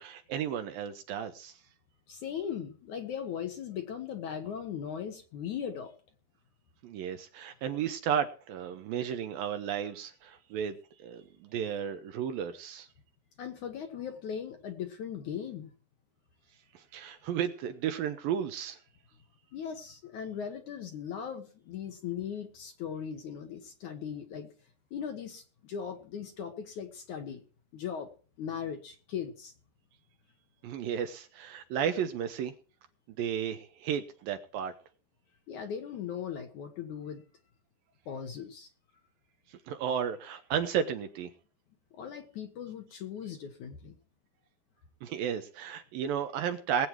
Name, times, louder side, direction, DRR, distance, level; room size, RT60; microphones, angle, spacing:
voice 1, 0.0-1.6 6.8-12.9 16.7-18.8 30.6-32.5 33.1-34.7 39.5-41.3 45.0-46.9, right 8 dB, 70° right, 8 dB, 2.3 m, -33 dB
voice 2, 2.1-5.9 13.4-15.7 19.5-24.5 24.9-27.4 27.7-28.1 28.4-29.5 35.5-37.2 38.1-38.7 41.9-44.0, left 8 dB, 60° left, 5 dB, 2.3 m, -38 dB
20.5 x 8.7 x 4.6 m, 0.40 s
omnidirectional pair, 4.7 m